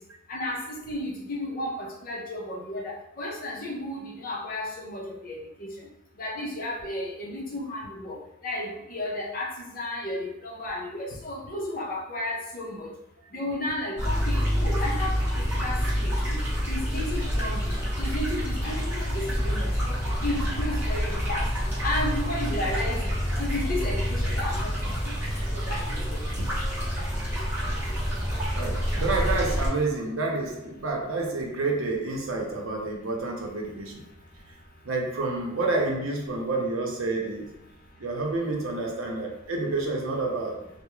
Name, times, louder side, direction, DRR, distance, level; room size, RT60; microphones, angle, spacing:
voice 1, 0.3-5.7 6.2-8.2 8.4-12.9 13.3-16.4 16.7-17.7 18.0-21.5 21.8-23.1 23.4-24.7 25.5-26.0, left 1 dB, 45° left, -3 dB, 0.5 m, -33 dB
sound 1, 14.0-29.7, equal, 10° right, 0.8 m, -27 dB
voice 2, 28.5-34.0 34.8-37.5 38.0-40.6, right 3 dB, 90° right, 0 dB, 0.6 m, -29 dB
2.3 x 2.0 x 3.0 m, 0.85 s
head